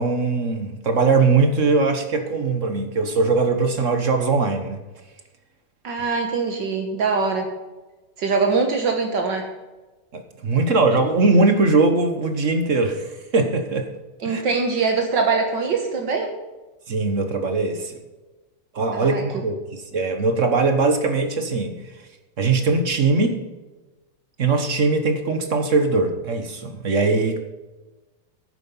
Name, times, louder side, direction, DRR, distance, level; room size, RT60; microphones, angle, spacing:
voice 1, 0.0-4.8 10.1-13.9 14.2-14.4 16.9-18.0 18.7-21.8 22.4-23.4 24.4-27.4, right 3 dB, 45° right, 7 dB, 1.4 m, -21 dB
voice 2, 5.8-7.5 8.2-9.5 14.2-16.3 18.9-19.2, right 4 dB, 65° right, 3 dB, 1.9 m, -22 dB
10.5 x 9.0 x 5.6 m, 1.2 s
omnidirectional pair, 2.1 m